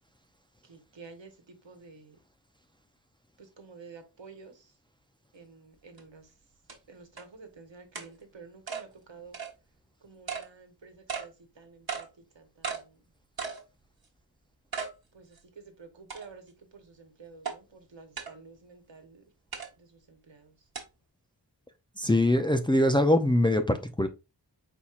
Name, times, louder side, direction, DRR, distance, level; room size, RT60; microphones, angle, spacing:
voice 1, 0.6-2.2 3.4-4.7 5.3-6.3 6.9-9.4 10.0-12.1 12.3-13.0 15.1-19.2 19.8-20.5, right 4 dB, 75° right, 1.2 m, -51 dB
sound 1, 6.0-6.1 6.7-6.8 7.2-7.3 7.9-8.1 8.7-8.8 9.3-9.5 10.3-10.5 11.1-11.3 11.9-12.1 12.6-12.8 13.4-13.6 14.0-14.1 14.7-14.9 15.4-15.5 16.1-16.5 17.4-17.6 18.2-18.3 19.5-19.7 20.7-20.8, right 6 dB, 55° right, 1.2 m, -35 dB
voice 2, 22.0-24.1, left 1 dB, 10° left, 0.5 m, -23 dB
4.3 x 4.3 x 2.4 m
wide cardioid pair, 60°, 44 cm